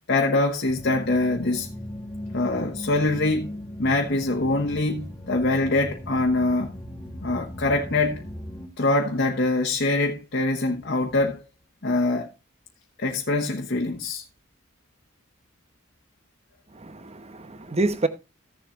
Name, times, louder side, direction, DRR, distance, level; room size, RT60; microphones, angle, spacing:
voice 1, 0.1-1.7 2.3-6.7 7.2-8.2 8.8-11.4 11.8-12.3 13.0-14.2, left 2 dB, 55° left, 1.1 m, -24 dB
Ambient Wave - (Harmonics), 0.7-8.7, left 1 dB, 10° left, 2.1 m, -38 dB
voice 2, 16.7-18.1, right 2 dB, 30° right, 0.9 m, -27 dB
15.5 x 7.4 x 2.5 m
head